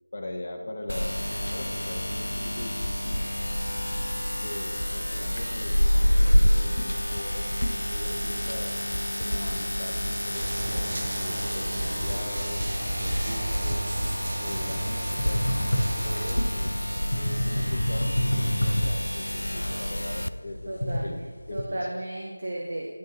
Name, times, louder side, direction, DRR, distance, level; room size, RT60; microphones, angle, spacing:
voice 1, 0.1-3.2 4.4-7.4 7.9-8.7 9.2-12.7 13.0-13.9 14.4-15.5 15.9-16.8 17.1-21.8, left 1 dB, 45° left, 3 dB, 0.9 m, -40 dB
sound 1, 0.9-20.3, equal, 90° left, 0.3 m, -28 dB
sound 2, 10.3-16.4, right 2 dB, 35° right, 0.6 m, -35 dB
sound 3, 15.2-21.7, equal, 70° left, 1.4 m, -29 dB
voice 2, 16.4-17.2 20.7-21.2 21.5-23.0, right 1 dB, 50° right, -1 dB, 0.9 m, -35 dB
10.0 x 3.7 x 5.5 m, 1.4 s
figure-of-eight pair, 170°, 0 cm